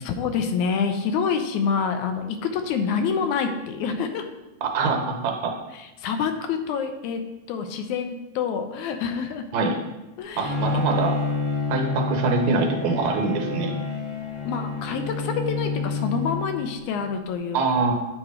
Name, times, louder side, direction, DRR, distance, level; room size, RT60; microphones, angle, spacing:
voice 1, 0.0-4.3 5.7-7.2 7.5-9.5 10.2-10.8 14.5-17.6, left 6 dB, 85° left, 7 dB, 2.0 m, -27 dB
voice 2, 4.6-5.5 9.5-9.7 10.4-11.2 11.7-13.7 17.5-17.9, right 3 dB, 75° right, 3 dB, 2.0 m, -24 dB
Bowed string instrument, 10.4-17.1, left 4 dB, 40° left, 1.0 m, -29 dB
8.5 x 3.0 x 4.8 m, 0.99 s
omnidirectional pair, 3.3 m